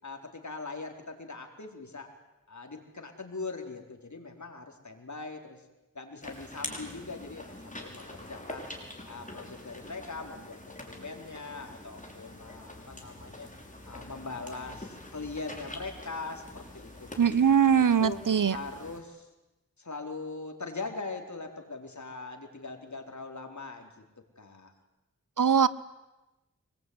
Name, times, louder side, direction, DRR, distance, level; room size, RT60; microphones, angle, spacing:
voice 1, 0.0-2.1 2.5-5.6 5.9-8.7 9.1-13.5 13.8-17.4 18.0-18.2 18.5-19.3 19.8-24.0 24.4-24.7, left 3 dB, 65° left, 4 dB, 4.3 m, -41 dB
sound 1, 6.2-19.0, left 1 dB, 25° left, 6.1 m, -45 dB
voice 2, 17.2-18.6 25.4-25.7, right 7 dB, 80° right, 17 dB, 1.0 m, -22 dB
25.5 x 21.0 x 9.7 m, 1.0 s
cardioid pair, 45°, 31 cm